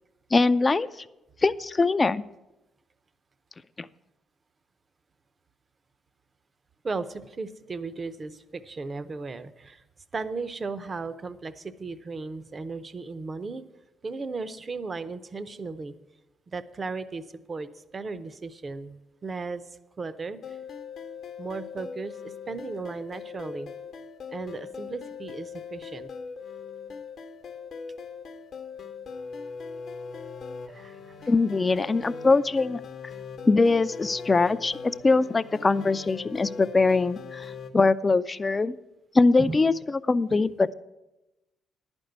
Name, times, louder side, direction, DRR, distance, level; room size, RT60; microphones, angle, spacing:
voice 1, 0.3-0.9 1.4-2.2 3.8-3.9 31.3-32.8 33.5-38.7 39.1-40.7, left 3 dB, 25° left, 14 dB, 0.4 m, -22 dB
voice 2, 6.8-9.8 10.1-13.6 14.0-15.9 16.5-19.6 20.0-20.6 21.4-23.7 24.3-26.1 30.6-31.3 39.4-39.6 40.3-40.4, right 4 dB, 35° right, 13 dB, 0.6 m, -36 dB
sound 1, 20.4-37.7, left 5 dB, 65° left, 0.9 m, -40 dB
10.5 x 5.3 x 8.0 m, 0.98 s
cardioid pair, 90°, 0 cm